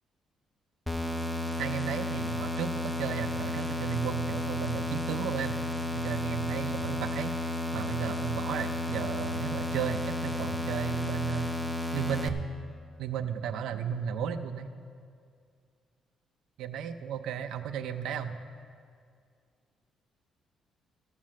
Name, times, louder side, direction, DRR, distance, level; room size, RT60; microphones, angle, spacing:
sound 1, 0.9-12.3, left 2 dB, ahead, 0.6 m, -33 dB
voice 1, 1.6-5.6 6.0-11.5 11.9-12.4 13.0-14.7 16.6-18.4, right 8 dB, 80° right, 8 dB, 0.5 m, -34 dB
13.5 x 7.4 x 6.3 m, 2.2 s
cardioid pair, 160°, 0 cm